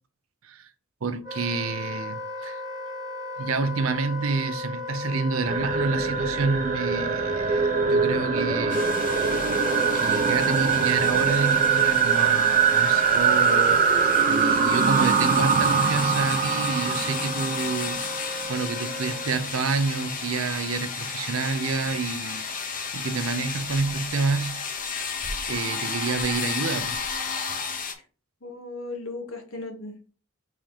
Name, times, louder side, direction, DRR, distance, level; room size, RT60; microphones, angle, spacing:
voice 1, 1.0-2.6 3.4-9.4 9.9-14.0 14.2-18.2 18.5-24.6 25.2-27.0, right 4 dB, 85° right, 0.6 m, -29 dB
Wind instrument woodwind instrument, 1.2-19.4, left 2 dB, 20° right, 1.1 m, -36 dB
sound 1, 5.4-18.5, right 6 dB, 40° right, 0.4 m, -23 dB
sound 2, 8.7-27.9, left 5 dB, 40° left, 0.8 m, -33 dB
voice 2, 28.4-30.1, left 2 dB, 75° left, 1.2 m, -36 dB
3.8 x 2.9 x 4.9 m
head